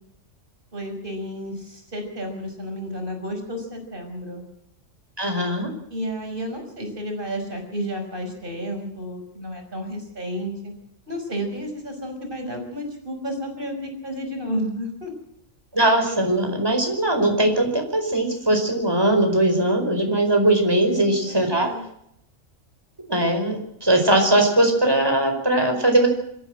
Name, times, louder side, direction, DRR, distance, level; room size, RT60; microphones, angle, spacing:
voice 1, 0.7-4.4 5.9-10.7 11.1-15.1 21.0-21.9, equal, 40° right, 3 dB, 5.9 m, -31 dB
voice 2, 5.2-5.7 15.7-21.7 23.1-26.1, right 1 dB, 15° right, 3 dB, 4.8 m, -20 dB
25.5 x 14.0 x 7.7 m, 0.74 s
omnidirectional pair, 1.4 m